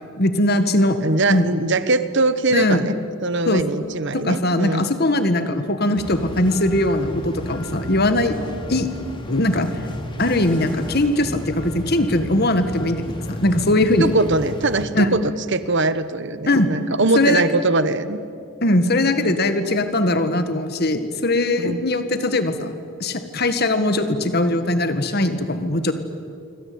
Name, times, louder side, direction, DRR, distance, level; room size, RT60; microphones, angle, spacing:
voice 1, 0.2-1.0 1.3-1.4 2.5-2.8 3.5-3.6 4.1-8.3 8.7-8.9 9.3-9.7 10.2-14.1 14.9-15.1 16.5-16.7 17.1-17.4 18.6-22.7 23.0-25.9, left 1 dB, 45° left, 9 dB, 1.8 m, -20 dB
voice 2, 1.0-3.0 3.2-4.9 14.0-15.2 15.5-18.2 19.2-19.3 21.6-21.8, right 2 dB, 55° right, 13 dB, 1.1 m, -21 dB
sound 1, 6.0-14.8, left 1 dB, 20° left, 2.6 m, -33 dB
27.0 x 24.0 x 8.7 m, 2.5 s
head